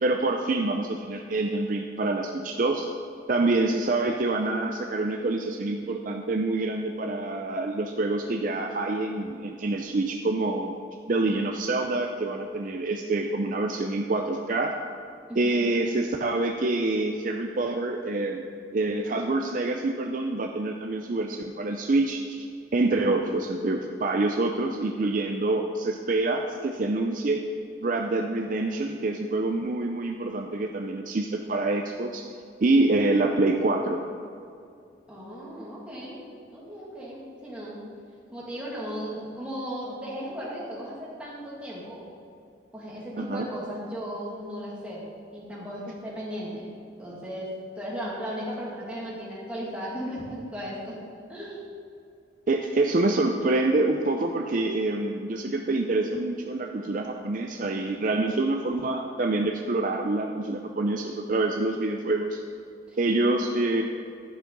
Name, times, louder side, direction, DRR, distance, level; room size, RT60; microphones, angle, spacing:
voice 1, 0.0-2.9 3.3-10.7 11.1-14.7 15.4-18.4 18.7-22.5 22.7-27.4 27.8-32.3 32.6-34.0 43.2-43.5 52.5-62.4 63.0-63.8, right 2 dB, 45° right, 3 dB, 0.4 m, -26 dB
voice 2, 15.3-15.6 35.1-36.2 36.5-37.8 38.3-42.0 42.7-45.0 45.3-46.7 47.0-47.5 47.8-51.0 51.3-51.6 62.9-63.0, equal, 5° right, -7 dB, 2.0 m, -36 dB
11.0 x 6.0 x 5.3 m, 2.4 s
head